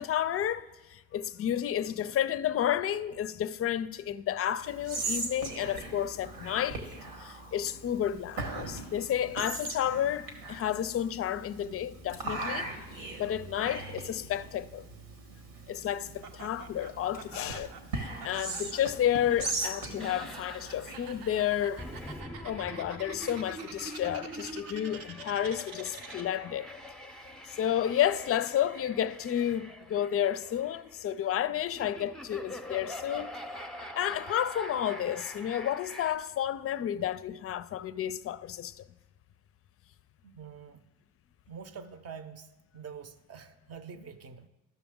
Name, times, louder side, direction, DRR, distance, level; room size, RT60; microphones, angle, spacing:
voice 1, 0.0-6.8 7.2-12.7 13.2-14.8 15.7-17.7 18.2-21.9 22.4-26.7 27.5-33.3 33.9-38.9, left 10 dB, 45° left, 0.4 m, -31 dB
Whispering, 4.6-22.2, right 2 dB, 90° right, 1.5 m, -40 dB
Laughter, 16.2-26.5, right 6 dB, 75° right, 0.8 m, -48 dB
sound 1, 20.0-36.1, left 1 dB, ahead, 0.6 m, -44 dB
voice 2, 40.2-40.9 41.5-42.5 42.7-44.5, right 6 dB, 45° right, 0.7 m, -46 dB
12.5 x 6.0 x 3.6 m
supercardioid pair, 75°, 34 cm